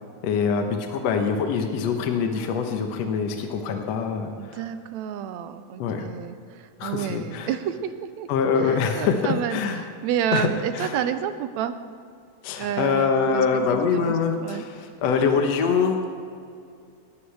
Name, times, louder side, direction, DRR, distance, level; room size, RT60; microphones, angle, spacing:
voice 1, 0.2-4.6 5.8-6.1 6.8-7.5 8.3-9.8 10.3-10.5 10.7-11.0 12.4-16.1, left 5 dB, 65° left, 4 dB, 2.1 m, -24 dB
voice 2, 4.4-8.3 8.6-11.8 12.6-14.6, right 9 dB, 75° right, 11 dB, 1.9 m, -30 dB
19.5 x 14.0 x 3.4 m, 2.3 s
omnidirectional pair, 3.4 m